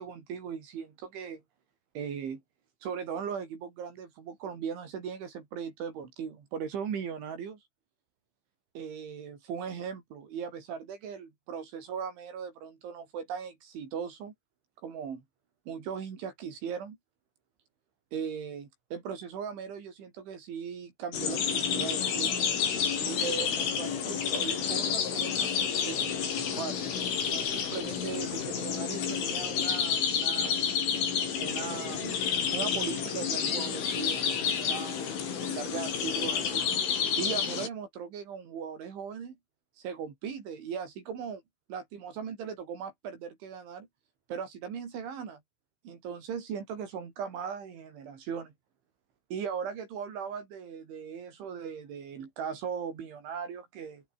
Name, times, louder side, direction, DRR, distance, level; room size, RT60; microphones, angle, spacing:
voice 1, 0.0-1.4 1.9-2.4 2.8-7.6 8.7-14.3 14.8-15.2 15.7-17.0 18.1-22.3 23.0-26.2 26.6-26.8 27.2-30.6 31.4-32.2 32.5-36.6 37.2-39.3 39.8-41.4 41.7-43.9 44.3-45.4 45.8-48.5 49.3-54.0, right 7 dB, 75° right, 6.5 m, -38 dB
sound 1, 21.1-37.7, left 7 dB, 80° left, 7.1 m, -30 dB
open air
omnidirectional pair, 5.5 m